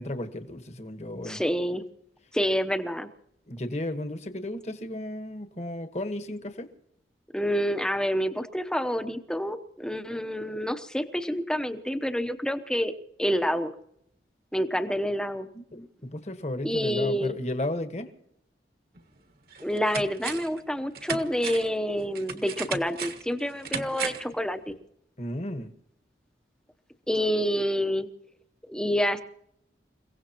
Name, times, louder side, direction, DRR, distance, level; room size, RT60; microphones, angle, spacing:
voice 1, 0.0-1.4 3.5-6.7 15.7-18.1 25.2-25.7, left 1 dB, 40° left, 8 dB, 1.3 m, -34 dB
voice 2, 1.2-1.8 2.3-3.1 7.3-12.9 13.2-13.7 14.5-15.5 15.7-15.8 16.6-17.4 19.6-24.8 27.1-28.1 28.7-29.2, equal, 5° left, 8 dB, 0.8 m, -28 dB
sound 1, 19.0-19.1 19.5-20.6 20.9-24.4 24.7-24.8, right 5 dB, 55° right, 1.5 m, -36 dB
29.0 x 17.0 x 3.0 m, 0.74 s
head